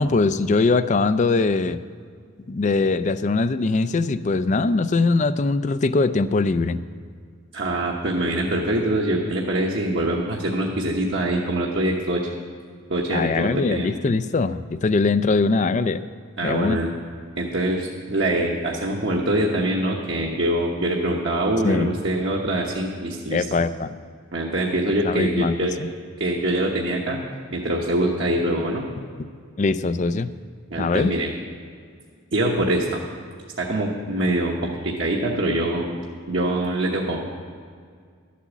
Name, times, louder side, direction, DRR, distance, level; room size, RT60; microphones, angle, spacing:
voice 1, 0.0-1.8 2.5-6.8 13.1-16.0 16.4-16.8 21.6-21.9 23.3-23.9 25.0-25.9 29.6-30.3 30.8-31.1, left 3 dB, 35° left, 13 dB, 0.4 m, -21 dB
voice 2, 7.5-12.3 12.9-13.9 16.4-16.9 17.4-23.4 24.3-25.7 26.2-27.2 27.5-28.9 30.7-31.3 32.3-33.0 33.6-37.2, right 1 dB, 60° right, -2 dB, 1.1 m, -24 dB
12.5 x 8.5 x 7.2 m, 2.1 s
head